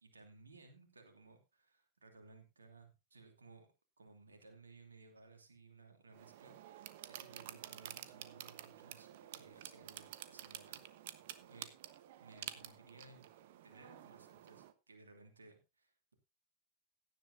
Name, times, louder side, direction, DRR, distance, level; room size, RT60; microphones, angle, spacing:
voice 1, 0.0-3.7 4.0-6.5 7.1-11.7 12.2-13.3 13.6-16.1, right 3 dB, 75° right, 4 dB, 2.8 m, -60 dB
sound 1, 6.1-14.7, right 12 dB, 55° right, 1.1 m, -51 dB
16.5 x 10.5 x 2.7 m, 0.25 s
figure-of-eight pair, 90°, 0 cm